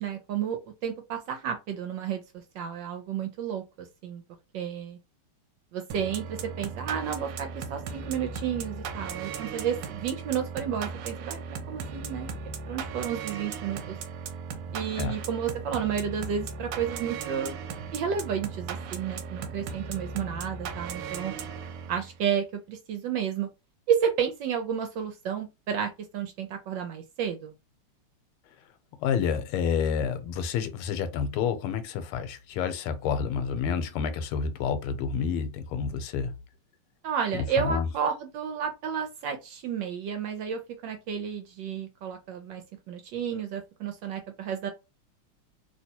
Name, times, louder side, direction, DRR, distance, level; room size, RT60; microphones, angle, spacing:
voice 1, 0.0-2.2 2.5-4.2 4.5-5.0 5.7-12.3 12.7-14.0 14.7-17.6 17.9-21.3 21.9-23.5 23.9-27.5 37.0-44.7, right 8 dB, 70° right, 1.1 m, -31 dB
sound 1, 5.9-22.2, right 5 dB, 90° right, 1.6 m, -37 dB
voice 2, 29.0-36.3 37.3-37.9, left 6 dB, 90° left, 1.5 m, -29 dB
3.2 x 2.8 x 2.8 m
omnidirectional pair, 2.4 m